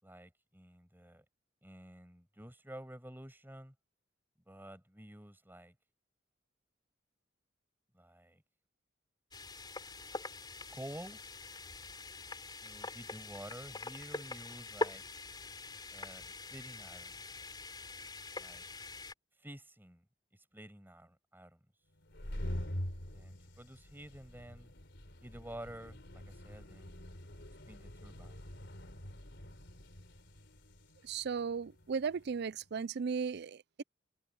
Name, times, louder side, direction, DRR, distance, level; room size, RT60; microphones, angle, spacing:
voice 1, 0.0-1.2 1.6-3.7 4.5-5.7 7.9-8.4 10.7-11.2 12.6-15.0 15.9-17.2 18.4-18.6 19.4-20.0 20.5-21.6 23.1-24.7 25.2-27.0 27.7-28.4, right 1 dB, 10° right, 6.5 m, -50 dB
sound 1, 9.3-19.1, left 2 dB, 25° left, 3.7 m, -44 dB
sound 2, 22.0-32.5, equal, 65° left, 4.0 m, -45 dB
voice 2, 31.0-33.8, right 5 dB, 60° right, 0.5 m, -36 dB
head